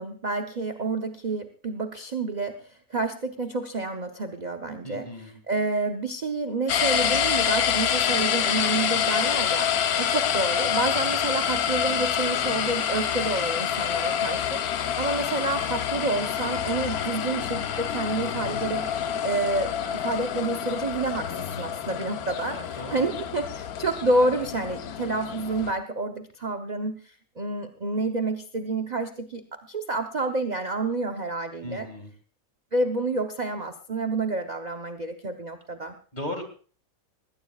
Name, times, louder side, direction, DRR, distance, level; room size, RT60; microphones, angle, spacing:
voice 1, 0.0-31.9 32.7-35.9, right 2 dB, 35° right, 5 dB, 0.8 m, -29 dB
voice 2, 4.8-5.3 22.5-23.0 31.6-32.1 36.1-36.4, left 1 dB, 30° left, 6 dB, 2.3 m, -36 dB
sound 1, 6.7-25.7, left 9 dB, 80° left, 1.3 m, -27 dB
20.0 x 17.0 x 2.4 m, 0.41 s
omnidirectional pair, 1.6 m